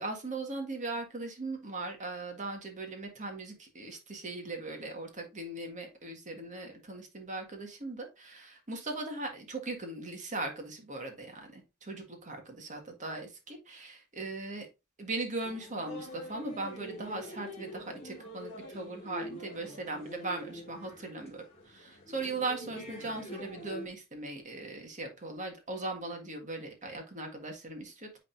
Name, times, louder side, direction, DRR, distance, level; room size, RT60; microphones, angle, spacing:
voice 1, 0.0-14.7 15.0-28.2, right 2 dB, 35° right, 3 dB, 1.8 m, -39 dB
sound 1, 15.4-23.9, left 1 dB, 30° left, 2.2 m, -45 dB
9.2 x 4.0 x 2.7 m, 0.26 s
head